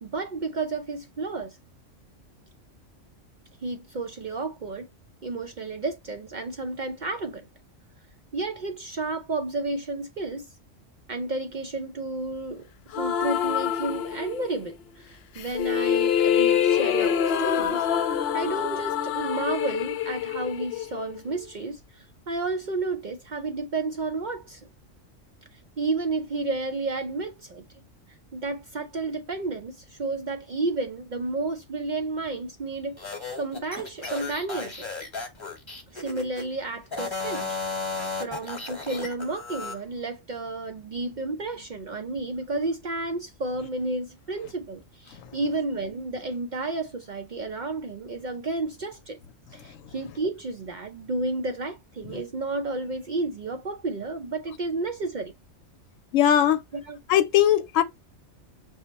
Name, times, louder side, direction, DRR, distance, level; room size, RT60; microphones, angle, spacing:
voice 1, 0.0-1.6 3.6-4.9 5.2-7.5 8.3-10.6 11.1-12.6 13.0-17.9 18.3-24.6 25.5-27.6 28.3-33.0 33.4-34.9 35.9-37.6 38.2-49.2 49.5-55.3 56.7-57.0, right 3 dB, 60° right, 0.5 m, -31 dB
sound 1, 12.9-14.6 15.4-21.5, left 9 dB, 60° left, 0.7 m, -25 dB
sound 2, 33.0-36.5 36.9-39.8, left 3 dB, 25° left, 1.1 m, -34 dB
voice 2, 56.1-56.6 57.1-57.8, left 11 dB, 90° left, 1.0 m, -19 dB
5.4 x 2.1 x 4.0 m
omnidirectional pair, 1.3 m